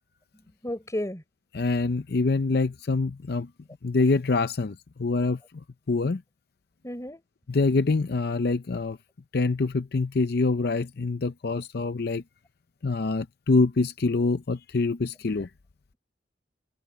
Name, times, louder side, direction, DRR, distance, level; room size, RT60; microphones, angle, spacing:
voice 1, 0.3-1.2 6.8-7.2, left 1 dB, 15° left, 4.1 m, -33 dB
voice 2, 1.5-3.5 3.8-5.4 5.9-6.2 7.5-9.0 9.3-12.2 12.8-15.5, left 3 dB, 60° left, 0.6 m, -25 dB
head